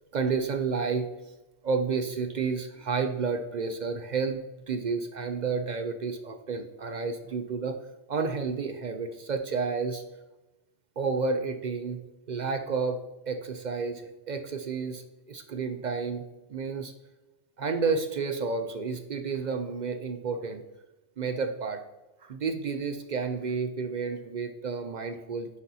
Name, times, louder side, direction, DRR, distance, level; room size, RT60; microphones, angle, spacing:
voice 1, 0.1-1.1 1.6-4.4 4.7-7.8 8.1-10.0 11.0-12.0 12.3-16.9 17.6-20.6 21.2-21.8 22.2-25.5, right 5 dB, 55° right, 7 dB, 0.5 m, -31 dB
9.9 x 5.3 x 2.8 m, 1.0 s
omnidirectional pair, 1.2 m